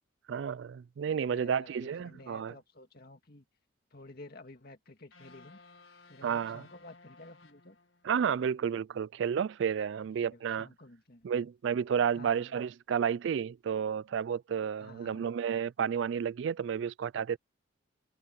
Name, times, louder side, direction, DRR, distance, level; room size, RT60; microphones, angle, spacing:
voice 1, 0.3-2.5 6.2-6.6 8.0-10.7 11.2-17.4, right 7 dB, 60° right, 0.3 m, -31 dB
voice 2, 1.3-3.5 3.9-5.6 6.1-7.8 10.1-11.3 12.2-12.6 14.8-15.2, left 2 dB, 45° left, 2.1 m, -52 dB
sound 1, 5.1-8.4, left 3 dB, 75° left, 1.9 m, -58 dB
head